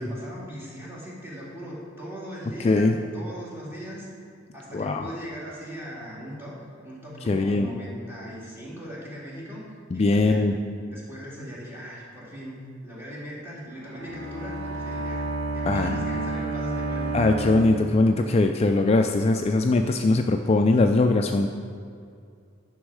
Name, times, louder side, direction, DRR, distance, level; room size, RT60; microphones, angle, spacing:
voice 1, 0.0-4.2 4.5-10.4 10.9-12.6 12.8-15.3 15.5-17.1, equal, 10° right, -7 dB, 2.4 m, -39 dB
voice 2, 2.6-3.0 4.7-5.1 7.3-7.7 9.9-10.6 15.6-15.9 17.1-21.5, left 2 dB, 30° left, 5 dB, 0.3 m, -21 dB
Bowed string instrument, 13.7-18.4, right 2 dB, 80° right, 1.8 m, -31 dB
10.0 x 6.2 x 4.8 m, 2.3 s
head